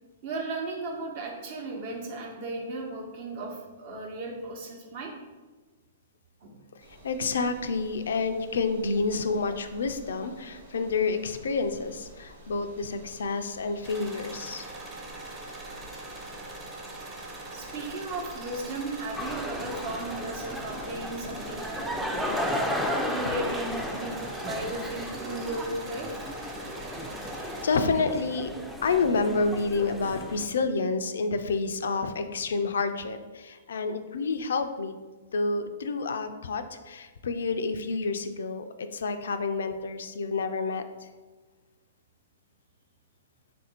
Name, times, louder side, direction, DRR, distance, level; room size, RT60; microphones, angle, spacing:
voice 1, 0.2-5.1 6.4-6.6 17.5-22.4 23.0-26.3, right 2 dB, 50° right, 0 dB, 0.9 m, -36 dB
voice 2, 6.7-14.7 27.3-28.5 28.8-34.9 35.3-41.1, left 4 dB, 75° left, 9 dB, 0.3 m, -29 dB
sound 1, 6.8-22.4, right 1 dB, 80° right, 1.1 m, -51 dB
sound 2, 13.8-27.7, right 2 dB, 15° right, 0.8 m, -42 dB
sound 3, 19.2-30.5, equal, ahead, 0.4 m, -34 dB
3.6 x 2.5 x 4.2 m, 1.3 s
hypercardioid pair, 125°, 0 cm